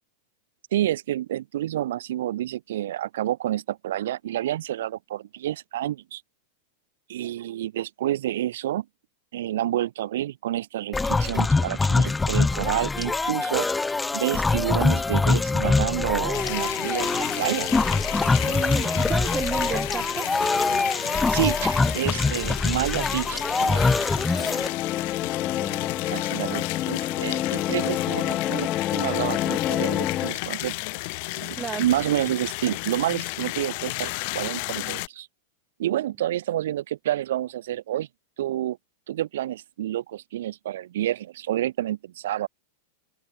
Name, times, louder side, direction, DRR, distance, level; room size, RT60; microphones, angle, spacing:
voice 1, 0.7-6.2 7.1-8.9 9.3-13.7 14.1-17.7 19.7-19.8 21.3-23.9 26.1-30.7 31.4-35.3 35.8-38.1 38.4-38.8 39.1-42.5, right 13 dB, 75° right, 2.0 m, -29 dB
sound 1, 10.9-24.7, left 3 dB, 10° left, 0.8 m, -24 dB
sound 2, 16.3-35.1, left 30 dB, 55° left, 3.9 m, -33 dB
voice 2, 18.3-20.3 25.4-25.9 31.5-31.9, right 6 dB, 20° right, 2.8 m, -33 dB
sound 3, 24.0-30.4, left 13 dB, 35° left, 0.4 m, -28 dB
open air
hypercardioid pair, 115°, 0 cm